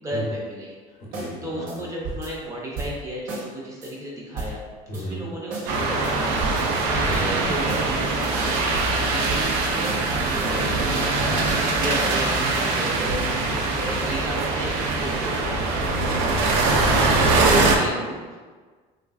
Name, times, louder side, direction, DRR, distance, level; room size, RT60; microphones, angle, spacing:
voice 1, 0.0-1.0 1.4-4.6 4.9-6.6 6.9-11.1 11.8-16.2 17.1-18.4, equal, 20° right, -4 dB, 0.4 m, -34 dB
voice 2, 1.0-1.8 4.9-5.2 7.0-7.4 11.2-11.6 16.7-17.2, equal, 40° left, -3 dB, 0.6 m, -33 dB
sound 1, 1.1-1.3 1.7-1.8 2.0-3.5 3.8-3.9 4.4-5.0 5.5-5.7 6.0-7.9 8.2-10.0 10.4-12.2 12.5-12.7 12.9-14.3, right 2 dB, 70° right, 0.8 m, -35 dB
sound 2, 5.7-17.8, right 3 dB, 90° right, 0.4 m, -22 dB
3.1 x 2.5 x 2.3 m, 1.4 s
cardioid pair, 170°, 15 cm